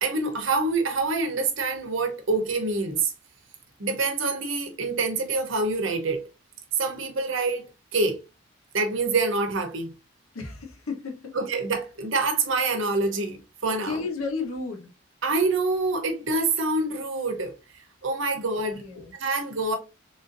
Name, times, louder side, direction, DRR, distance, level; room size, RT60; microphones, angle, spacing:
voice 1, 0.0-3.1 3.8-6.2 6.8-8.2 8.7-9.9 11.4-13.9 15.2-17.5 18.0-18.8 19.2-19.8, right 3 dB, 65° right, 0.9 m, -26 dB
voice 2, 10.3-11.4 13.8-14.9 18.7-19.1, left 4 dB, 85° left, 1.0 m, -33 dB
3.5 x 2.6 x 2.6 m
head